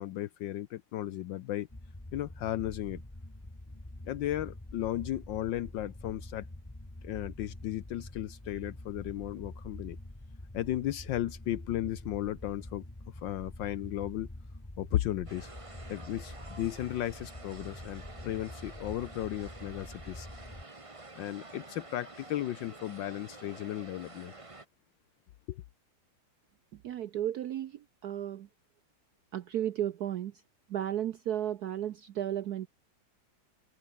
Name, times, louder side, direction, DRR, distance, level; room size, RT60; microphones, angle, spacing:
voice 1, 0.0-1.7 2.1-3.0 4.1-6.5 7.0-10.0 10.5-12.9 13.2-14.3 14.8-15.5 15.9-20.3 21.2-24.3 25.5-25.6, left 13 dB, 75° left, 1.4 m, -35 dB
sound 1, 1.7-20.6, left 1 dB, 10° left, 1.7 m, -46 dB
sound 2, 15.3-24.7, right 2 dB, 15° right, 1.7 m, -50 dB
voice 2, 26.8-28.5 29.3-30.3 30.7-32.7, right 11 dB, 65° right, 1.1 m, -34 dB
omnidirectional pair, 2.1 m